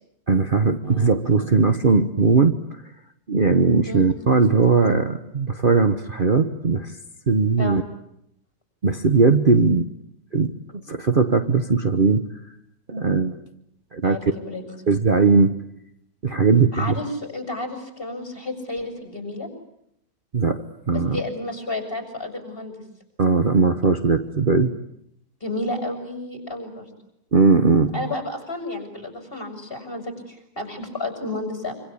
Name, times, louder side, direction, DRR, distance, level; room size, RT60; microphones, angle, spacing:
voice 1, 0.3-2.6 3.3-6.9 7.3-7.8 8.8-9.9 10.3-10.6 10.9-12.3 12.9-13.4 13.9-14.2 14.9-15.6 16.2-16.9 20.3-21.2 23.2-24.7 27.3-28.1, right 4 dB, 35° right, 7 dB, 1.3 m, -19 dB
voice 2, 14.0-14.6 16.7-19.5 20.9-22.7 25.4-26.9 27.9-31.7, left 2 dB, 35° left, 5 dB, 6.6 m, -31 dB
26.0 x 26.0 x 8.6 m, 0.77 s
omnidirectional pair, 1.6 m